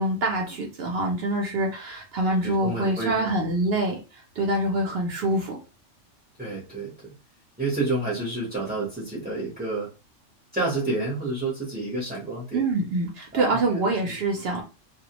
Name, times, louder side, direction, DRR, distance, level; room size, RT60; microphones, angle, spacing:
voice 1, 0.0-4.0 4.4-5.6 12.5-14.6, right 2 dB, 60° right, 1 dB, 0.7 m, -25 dB
voice 2, 2.4-3.3 6.4-6.9 7.6-9.9 10.5-12.6 13.3-14.1, right 2 dB, 10° right, -5 dB, 0.6 m, -29 dB
2.3 x 2.1 x 2.8 m, 0.32 s
omnidirectional pair, 1.3 m